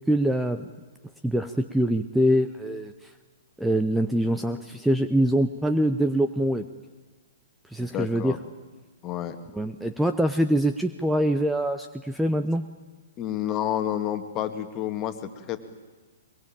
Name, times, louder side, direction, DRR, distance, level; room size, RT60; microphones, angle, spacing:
voice 1, 0.1-0.7 1.2-3.1 3.6-6.7 7.7-8.4 9.5-12.6, equal, 5° right, 8 dB, 0.9 m, -24 dB
voice 2, 7.8-8.4 9.0-9.4 13.2-15.6, left 11 dB, 30° left, 8 dB, 2.1 m, -30 dB
22.5 x 22.5 x 8.9 m, 1.3 s
figure-of-eight pair, 120°, 0 cm